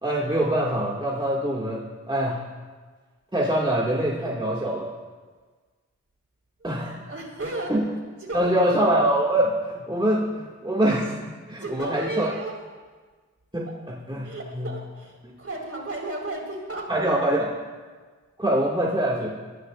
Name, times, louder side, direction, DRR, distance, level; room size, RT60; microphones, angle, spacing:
voice 1, 0.0-2.4 3.3-4.9 6.6-7.0 7.7-7.8 8.3-12.3 13.5-14.7 16.9-17.5 18.4-19.3, right 1 dB, 15° right, -5 dB, 2.1 m, -24 dB
voice 2, 7.1-7.9 8.2-8.7 11.6-12.5 14.2-16.9, right 2 dB, 50° right, -2 dB, 4.5 m, -34 dB
21.5 x 14.0 x 2.5 m, 1.4 s
cardioid pair, 40°, 30 cm